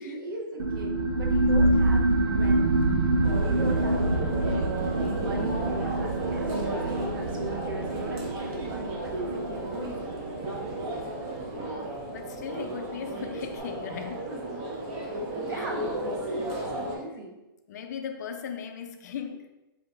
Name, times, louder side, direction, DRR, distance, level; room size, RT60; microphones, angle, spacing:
voice 1, 0.0-2.7 3.4-4.1 4.5-10.1 13.9-14.6 15.0-17.4, right 1 dB, 65° right, 1 dB, 1.1 m, -39 dB
sound 1, 0.6-11.7, right 2 dB, 80° right, 0.6 m, -26 dB
sound 2, 3.2-17.0, right 1 dB, 30° right, 0.8 m, -34 dB
voice 2, 12.1-14.3 15.5-15.7 17.7-19.5, left 7 dB, 50° left, 5 dB, 0.5 m, -38 dB
3.7 x 2.8 x 4.6 m, 1.0 s
hypercardioid pair, 155°, 12 cm